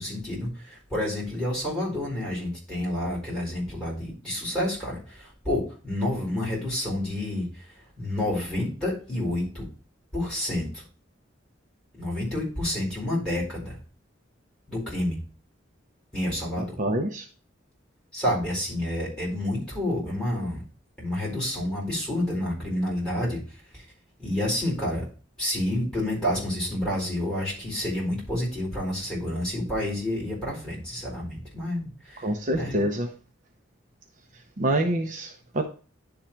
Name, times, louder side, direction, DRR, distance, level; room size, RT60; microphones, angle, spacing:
voice 1, 0.0-7.7 8.0-9.7 10.1-10.8 12.0-13.8 14.7-15.2 16.1-16.7 18.1-20.6 21.0-23.4 23.7-23.8 24.2-25.0 25.4-32.8, left 1 dB, 5° left, -5 dB, 4.5 m, -29 dB
voice 2, 16.6-17.2 32.2-33.1 34.6-35.6, right 1 dB, 40° right, 4 dB, 0.7 m, -26 dB
10.5 x 3.8 x 4.4 m, 0.38 s
head